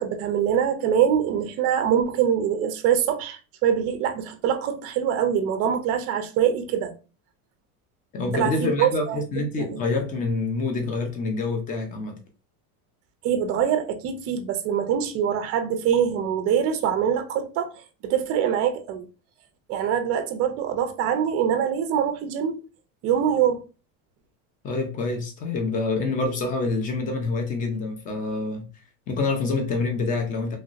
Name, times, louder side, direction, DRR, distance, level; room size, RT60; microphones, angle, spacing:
voice 1, 0.0-6.9 8.3-9.8 13.2-19.0 19.7-22.6 23.0-23.6, right 8 dB, 35° right, 0.5 m, -24 dB
voice 2, 8.1-12.2 24.6-28.7 29.1-30.6, left 3 dB, 20° left, 0.5 m, -26 dB
3.1 x 2.7 x 2.4 m
supercardioid pair, 150°, 44 cm